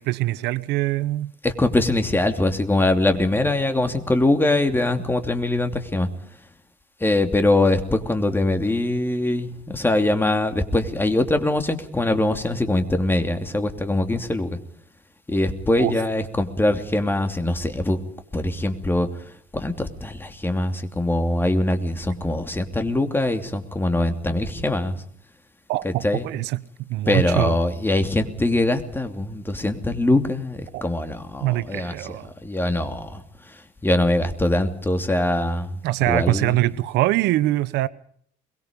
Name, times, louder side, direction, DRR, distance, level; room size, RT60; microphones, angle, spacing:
voice 1, 0.0-1.3 15.8-15.9 25.7-27.6 30.7-30.9 31.4-32.3 35.8-37.9, right 17 dB, 85° right, 1.0 m, -23 dB
voice 2, 1.4-6.1 7.0-14.6 15.3-18.0 18.3-19.1 19.5-25.0 25.8-26.3 27.1-32.0 32.4-33.2 33.8-35.7 36.1-36.7, left 2 dB, 10° left, 2.9 m, -22 dB
23.0 x 22.5 x 5.3 m
cardioid pair, 110°, 17 cm